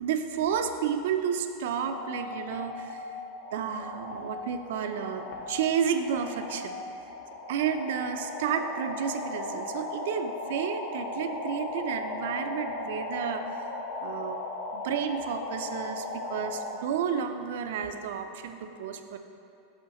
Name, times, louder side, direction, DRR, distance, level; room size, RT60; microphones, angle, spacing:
voice 1, 0.0-3.1 3.5-6.8 7.5-13.7 14.0-14.4 14.7-19.2, right 7 dB, 70° right, 8 dB, 0.4 m, -31 dB
sound 1, 1.8-16.7, left 2 dB, 65° left, 0.7 m, -37 dB
6.2 x 5.6 x 2.9 m, 2.7 s
supercardioid pair, 170°, 0 cm